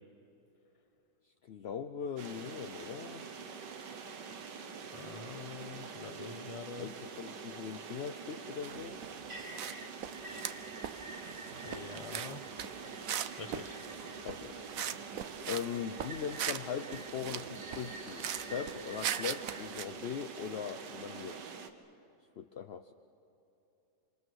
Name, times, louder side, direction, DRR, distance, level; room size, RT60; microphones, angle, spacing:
voice 1, 1.4-3.2 6.8-9.0 14.2-14.6 15.5-21.4 22.4-22.9, left 7 dB, 55° left, 7 dB, 0.7 m, -40 dB
sound 1, 2.2-21.7, right 5 dB, 85° right, 1.9 m, -46 dB
voice 2, 4.9-6.9 11.6-12.4 13.4-13.8, left 4 dB, 25° left, 7 dB, 1.1 m, -45 dB
sound 2, 8.6-9.8 10.0-15.7 16.0-19.8, right 9 dB, 60° right, 1.0 m, -40 dB
sound 3, 9.3-14.5 15.4-19.7, right 1 dB, 25° right, 1.8 m, -50 dB
27.0 x 26.5 x 6.4 m, 3.0 s
omnidirectional pair, 1.9 m